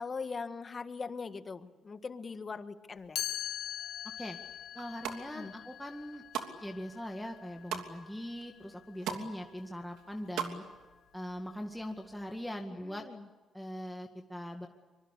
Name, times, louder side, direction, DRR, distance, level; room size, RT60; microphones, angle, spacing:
voice 1, 0.0-3.2 5.3-5.5 12.8-13.3, left 4 dB, 35° left, 9 dB, 1.8 m, -41 dB
Chime, 3.2-9.0, left 11 dB, 80° left, 2.4 m, -42 dB
voice 2, 4.7-6.2 6.6-10.6 11.1-13.0 13.5-14.7, equal, ahead, 2 dB, 2.0 m, -41 dB
sound 1, 4.7-5.2 5.8-6.5 6.9-7.9 8.4-8.5 8.7-9.3 9.6-10.5 10.8-10.9, right 8 dB, 85° right, 3.0 m, -38 dB
25.0 x 24.0 x 8.4 m, 1.4 s
cardioid pair, 90°, 0 cm